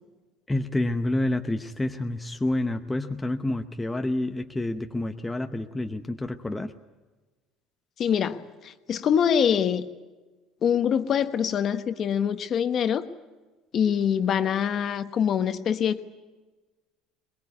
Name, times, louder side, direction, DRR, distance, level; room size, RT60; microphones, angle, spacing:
voice 1, 0.5-6.7, left 1 dB, 10° left, 5 dB, 0.8 m, -28 dB
voice 2, 8.0-9.8 10.6-13.1 13.7-16.0, left 8 dB, 35° left, 10 dB, 1.1 m, -24 dB
22.5 x 22.0 x 9.6 m, 1.3 s
cardioid pair, 155°, 0 cm